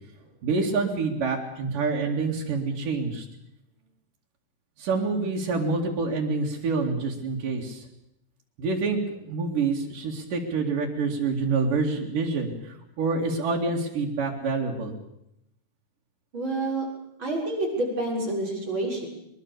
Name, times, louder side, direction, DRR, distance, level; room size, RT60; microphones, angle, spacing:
voice 1, 0.4-3.3 4.8-7.9 8.6-14.9, right 4 dB, 90° right, -2 dB, 4.2 m, -27 dB
voice 2, 16.3-16.9 17.2-19.1, right 2 dB, 35° right, -1 dB, 7.2 m, -28 dB
23.0 x 22.5 x 6.9 m, 0.80 s
omnidirectional pair, 3.7 m